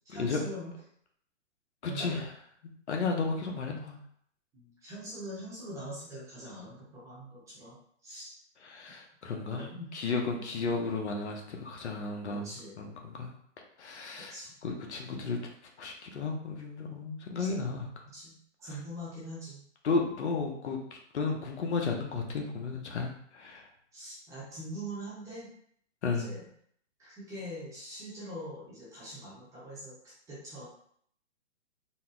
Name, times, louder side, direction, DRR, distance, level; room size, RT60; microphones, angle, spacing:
voice 1, 0.0-0.7 1.9-2.3 4.5-7.7 8.0-8.3 9.7-9.9 10.3-10.5 12.4-12.8 14.2-14.5 17.4-17.5 18.1-18.3 18.6-19.6 23.9-25.5 26.1-26.4 27.0-30.7, equal, 10° right, -8 dB, 0.9 m, -43 dB
voice 2, 1.8-2.3 2.9-4.0 8.6-9.7 9.9-12.5 12.8-13.3 13.8-15.4 15.8-17.9 19.8-23.7 26.0-26.3, left 4 dB, 65° left, 1 dB, 1.0 m, -33 dB
4.1 x 2.2 x 3.8 m, 0.64 s
hypercardioid pair, 155°, 37 cm